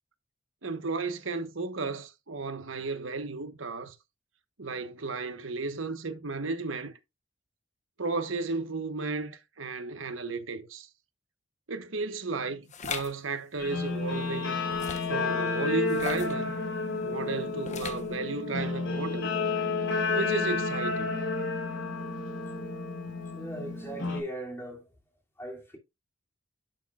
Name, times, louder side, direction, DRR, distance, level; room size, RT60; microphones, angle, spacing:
voice 1, 0.6-4.0 4.6-6.9 8.0-10.9 11.7-14.6 15.1-16.5 17.0-19.3 20.1-21.1, right 3 dB, 85° right, 1.2 m, -34 dB
sound 1, 12.7-13.1 14.7-15.2 15.9-16.4 17.6-18.1, left 5 dB, 40° left, 1.0 m, -38 dB
Guitar, 13.6-24.2, left 3 dB, 70° left, 3.8 m, -31 dB
voice 2, 23.3-24.8 25.4-25.8, right 1 dB, 15° left, 2.8 m, -39 dB
11.5 x 6.4 x 2.5 m
head